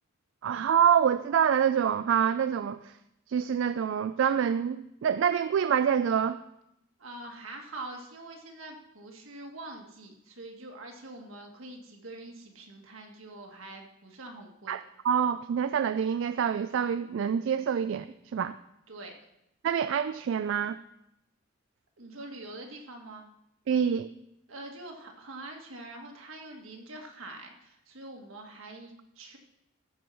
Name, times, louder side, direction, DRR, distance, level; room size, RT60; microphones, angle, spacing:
voice 1, 0.4-3.0 3.3-6.4 14.7-18.5 19.6-20.8 23.7-24.1, right 8 dB, 65° right, 12 dB, 0.3 m, -26 dB
voice 2, 7.0-14.7 18.9-19.1 22.0-23.3 24.5-29.4, right 2 dB, 80° right, 2 dB, 1.7 m, -44 dB
14.0 x 4.7 x 6.2 m, 0.84 s
head